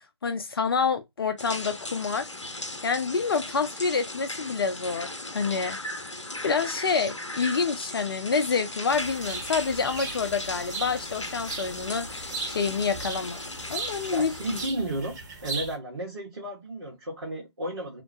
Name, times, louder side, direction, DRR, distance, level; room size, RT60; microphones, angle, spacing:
voice 1, 0.2-2.3 2.8-5.8 6.4-13.4 13.7-14.6, left 5 dB, 55° left, 0.5 m, -27 dB
sound 1, 1.4-14.7, left 2 dB, 90° left, 0.7 m, -37 dB
sound 2, 8.9-15.8, right 4 dB, 40° right, 1.2 m, -38 dB
voice 2, 14.1-18.0, right 1 dB, 60° right, 1.3 m, -33 dB
2.8 x 2.2 x 2.5 m
figure-of-eight pair, 145°, 15 cm